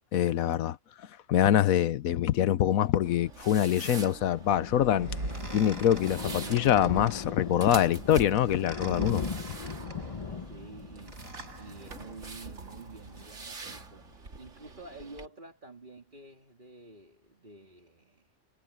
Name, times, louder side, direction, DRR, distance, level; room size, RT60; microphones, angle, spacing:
voice 1, 0.1-0.8 1.3-5.1 5.5-9.2, left 11 dB, 80° left, 1.1 m, -24 dB
sound 1, 3.0-15.3, right 3 dB, 60° right, 2.5 m, -45 dB
Thunder, 3.5-12.9 13.2-13.4 13.7-13.8 14.0-14.1, left 4 dB, 30° left, 0.8 m, -39 dB
sound 2, 4.6-13.3, right 2 dB, 75° right, 5.0 m, -45 dB
voice 2, 10.3-11.2 11.5-18.3, right 3 dB, 35° right, 2.8 m, -49 dB
omnidirectional pair, 1.5 m